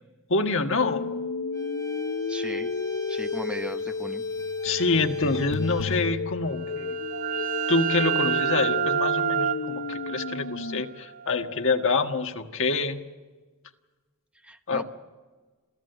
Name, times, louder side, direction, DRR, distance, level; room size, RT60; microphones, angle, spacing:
voice 1, 0.3-1.1 4.6-7.0 7.7-13.0 14.7-14.8, left 3 dB, 65° left, 5 dB, 1.6 m, -26 dB
sound 1, 0.8-10.8, left 4 dB, 80° left, 0.6 m, -31 dB
Bowed string instrument, 1.5-6.2, left 1 dB, 15° left, 1.4 m, -47 dB
voice 2, 2.3-2.7 3.1-4.3 14.4-14.8, right 1 dB, 5° right, 7 dB, 1.1 m, -37 dB
sound 2, 6.5-12.0, right 9 dB, 45° right, 0.7 m, -29 dB
27.0 x 16.0 x 8.0 m, 1.3 s
head